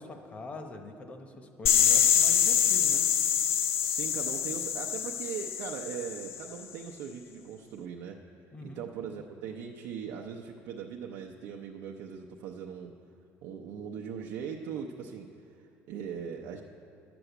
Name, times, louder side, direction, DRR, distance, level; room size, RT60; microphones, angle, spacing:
voice 1, 0.0-3.1 8.5-8.8, left 3 dB, 25° left, 5 dB, 0.9 m, -43 dB
sound 1, 1.7-6.4, left 8 dB, 55° left, 0.5 m, -25 dB
voice 2, 3.8-8.2 8.6-12.9 13.4-16.6, right 7 dB, 85° right, 0 dB, 0.7 m, -40 dB
11.0 x 7.0 x 8.0 m, 2.7 s
cardioid pair, 160°, 5 cm